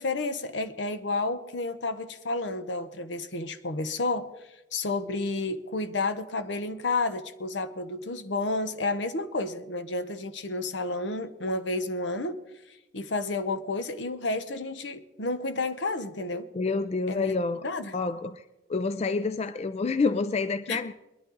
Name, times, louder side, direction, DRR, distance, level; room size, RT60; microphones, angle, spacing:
voice 1, 0.0-4.3 4.7-12.4 12.9-16.5 17.1-17.3 17.6-17.9 20.7-20.8, left 2 dB, 70° left, 0.9 m, -31 dB
voice 2, 16.5-17.6 17.9-18.4 18.7-20.9, left 4 dB, 35° left, 0.4 m, -28 dB
21.5 x 11.0 x 3.9 m
head